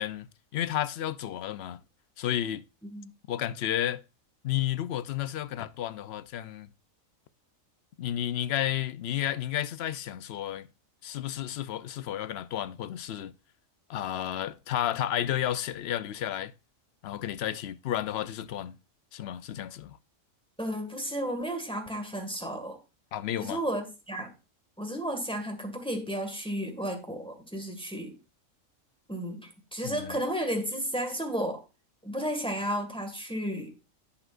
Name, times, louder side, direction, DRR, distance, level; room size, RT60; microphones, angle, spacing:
voice 1, 0.0-1.8 2.2-2.6 3.3-4.0 4.4-6.7 8.0-10.7 11.0-13.3 13.9-16.5 17.0-18.8 19.1-20.0 23.1-23.6 29.8-30.2, left 11 dB, 60° left, 0.7 m, -32 dB
voice 2, 20.6-22.8 23.4-24.3 24.8-28.1 29.1-31.6 32.0-33.7, equal, 5° left, 1.8 m, -33 dB
11.0 x 8.7 x 2.5 m
omnidirectional pair, 1.4 m